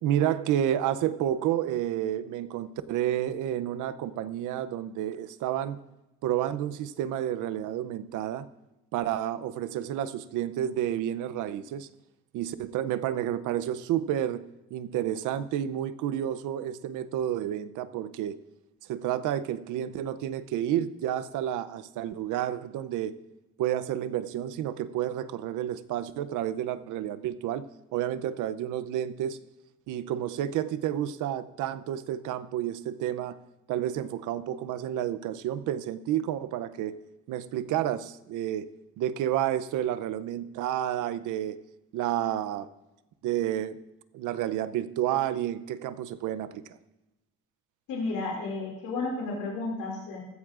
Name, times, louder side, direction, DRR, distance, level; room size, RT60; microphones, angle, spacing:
voice 1, 0.0-5.8 6.2-8.5 8.9-11.9 12.3-14.4 14.7-18.4 18.8-23.2 23.6-27.7 27.9-29.4 29.9-33.4 33.7-37.0 37.3-38.7 39.0-41.6 41.9-42.7 43.2-43.8 44.1-46.6, right 11 dB, 90° right, 14 dB, 0.6 m, -30 dB
voice 2, 47.9-50.2, left 3 dB, 85° left, -2 dB, 2.6 m, -32 dB
15.0 x 13.5 x 2.5 m, 0.98 s
cardioid pair, 90°, 30 cm